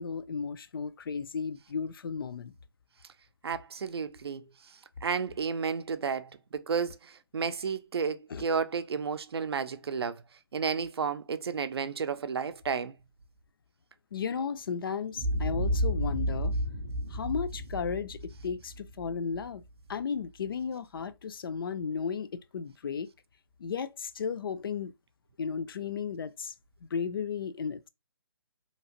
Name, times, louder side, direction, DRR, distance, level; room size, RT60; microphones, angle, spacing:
voice 1, 0.0-2.5 8.3-8.4 14.1-16.5 17.1-19.6 19.9-23.1 23.6-24.9 25.4-26.5 26.8-27.9, left 6 dB, 60° left, 0.4 m, -34 dB
voice 2, 3.4-10.2 10.5-12.9, right 6 dB, 75° right, 0.4 m, -32 dB
Boom, 15.2-19.4, equal, 25° right, 0.5 m, -31 dB
2.9 x 2.5 x 2.8 m
hypercardioid pair, 165°, 13 cm